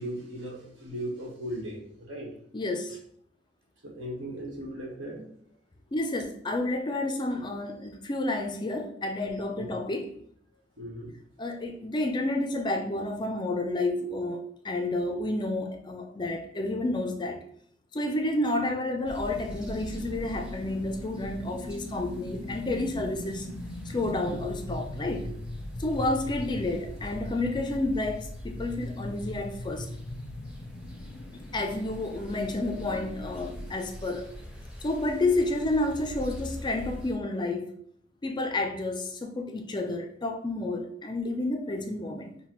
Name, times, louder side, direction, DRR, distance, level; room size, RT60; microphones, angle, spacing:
voice 1, 0.0-2.3 3.8-5.2 9.6-9.7 10.8-11.1, equal, 75° right, -2 dB, 1.4 m, -37 dB
voice 2, 2.5-3.0 5.9-10.1 11.4-17.4 17.9-23.5 23.9-25.3 25.8-29.9 31.5-34.3 34.8-37.7 38.2-42.4, left 2 dB, 25° left, 4 dB, 0.4 m, -30 dB
sound 1, 19.0-37.1, equal, 5° right, 0.7 m, -43 dB
sound 2, 19.3-33.7, left 1 dB, 80° left, 0.5 m, -41 dB
5.6 x 2.2 x 3.0 m, 0.64 s
head